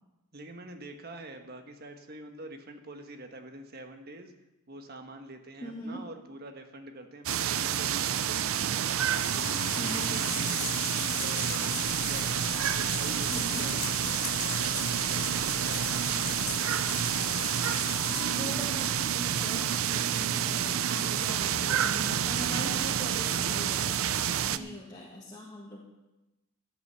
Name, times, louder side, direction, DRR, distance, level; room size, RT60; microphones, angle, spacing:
voice 1, 0.3-4.3 4.7-16.4 24.5-24.8, right 1 dB, 50° right, 6 dB, 1.3 m, -45 dB
voice 2, 5.6-6.1 9.8-10.2 13.3-13.7 18.1-24.0 24.5-25.8, equal, 20° left, -3 dB, 1.7 m, -41 dB
sound 1, 7.3-24.6, right 9 dB, 85° right, 0.5 m, -29 dB
sound 2, 9.1-18.2, left 11 dB, 75° left, 1.0 m, -39 dB
sound 3, 11.9-23.8, right 3 dB, 25° right, 0.9 m, -53 dB
13.0 x 8.4 x 6.9 m, 1.0 s
head